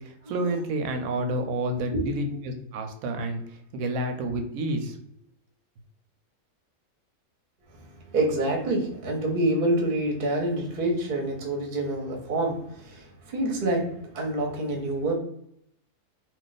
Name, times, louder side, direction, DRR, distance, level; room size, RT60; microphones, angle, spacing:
voice 1, 0.0-5.0, right 1 dB, 70° right, 5 dB, 1.0 m, -30 dB
voice 2, 8.1-12.6 12.8-15.1, right 1 dB, 45° right, 0 dB, 0.8 m, -27 dB
2.4 x 2.4 x 3.9 m, 0.72 s
omnidirectional pair, 1.6 m